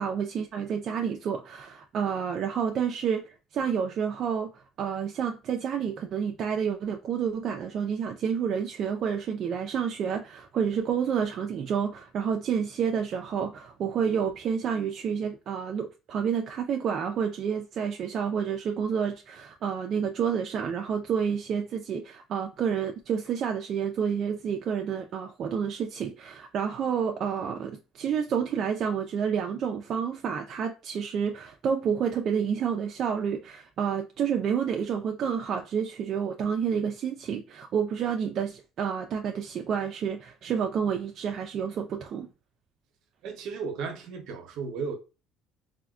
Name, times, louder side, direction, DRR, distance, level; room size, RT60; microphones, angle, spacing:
voice 1, 0.0-42.3, right 7 dB, 50° right, 0.3 m, -29 dB
voice 2, 43.2-45.0, right 5 dB, 65° right, 0.7 m, -34 dB
3.4 x 2.1 x 2.3 m
cardioid pair, 120°, 0 cm